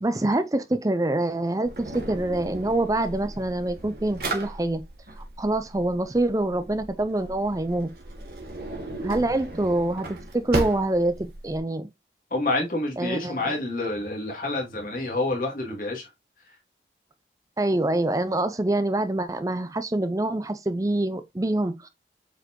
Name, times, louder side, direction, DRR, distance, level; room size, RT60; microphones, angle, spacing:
voice 1, 0.0-4.8 5.4-7.9 9.0-11.9 13.0-13.6 17.6-21.9, right 2 dB, 20° right, 0.5 m, -25 dB
Drawer open or close, 1.7-11.6, right 2 dB, 60° right, 2.1 m, -36 dB
voice 2, 12.3-16.1, left 2 dB, 50° left, 2.7 m, -28 dB
7.8 x 4.6 x 3.0 m
head